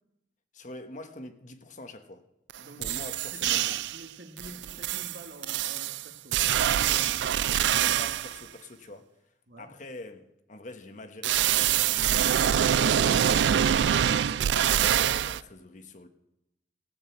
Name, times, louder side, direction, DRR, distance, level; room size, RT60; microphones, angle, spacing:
voice 1, 0.5-2.2 2.8-3.8 6.9-7.2 7.5-12.4 12.8-16.1, left 2 dB, 45° left, 1.2 m, -45 dB
sound 1, 2.5-2.6 2.8-4.0 4.4-8.4 11.2-15.4, right 10 dB, 85° right, 0.4 m, -25 dB
voice 2, 2.6-2.9 3.3-3.4 3.9-6.4 9.5-9.7, right 1 dB, 65° right, 1.6 m, -48 dB
16.0 x 6.5 x 7.9 m
head